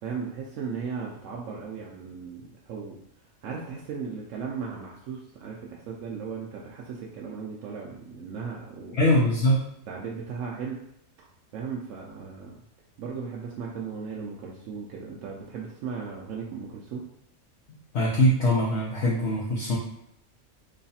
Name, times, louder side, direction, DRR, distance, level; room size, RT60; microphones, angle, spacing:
voice 1, 0.0-3.0 3.4-9.2 9.9-10.8 11.5-12.6 13.0-17.1, right 5 dB, 85° right, -3 dB, 1.0 m, -36 dB
voice 2, 8.9-9.6 17.9-19.8, left 1 dB, 65° left, -7 dB, 1.0 m, -22 dB
3.2 x 2.4 x 4.0 m, 0.76 s
omnidirectional pair, 1.3 m